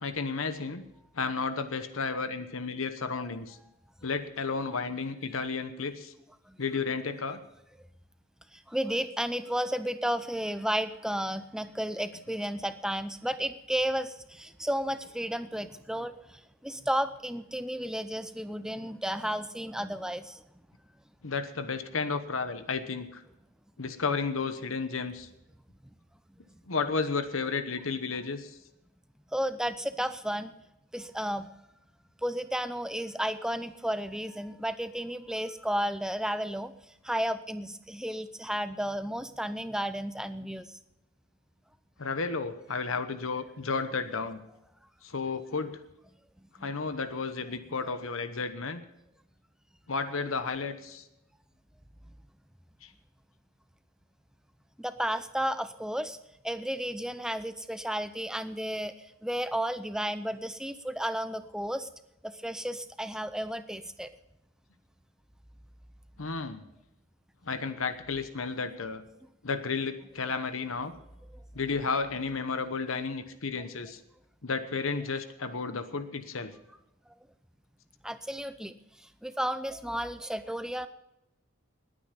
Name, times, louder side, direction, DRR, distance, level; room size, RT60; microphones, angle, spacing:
voice 1, 0.0-0.8 1.1-3.6 4.0-6.1 6.6-7.4 21.2-23.2 23.8-25.3 26.7-28.5 42.0-44.4 45.0-45.8 46.6-48.8 49.9-51.0 52.8-52.9 66.2-66.6 67.4-69.0 69.4-70.9 71.5-74.0 74.4-76.5, left 4 dB, 75° left, 10 dB, 1.0 m, -32 dB
voice 2, 8.5-20.4 29.3-30.5 30.9-31.5 32.2-36.7 37.0-40.7 46.6-46.7 54.8-56.2 56.4-58.9 59.2-61.9 62.2-64.1 78.0-78.7 79.2-80.9, equal, 5° right, 11 dB, 0.6 m, -33 dB
20.0 x 9.1 x 5.2 m, 0.88 s
head